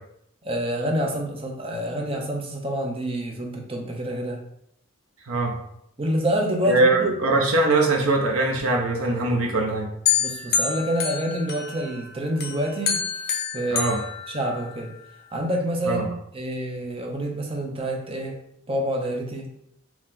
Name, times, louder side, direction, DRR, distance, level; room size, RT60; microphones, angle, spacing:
voice 1, 0.4-4.4 6.0-7.1 10.2-13.1 13.5-13.9 14.3-14.9 15.3-16.1 16.3-18.4 18.7-19.5, right 1 dB, 25° right, 1 dB, 0.5 m, -27 dB
voice 2, 6.7-9.9 13.7-14.0 15.9-16.1, right 2 dB, 75° right, 1 dB, 0.6 m, -21 dB
sound 1, 10.1-12.0 12.4-14.9, left 7 dB, 45° left, 0.5 m, -27 dB
3.0 x 2.8 x 3.7 m, 0.73 s
head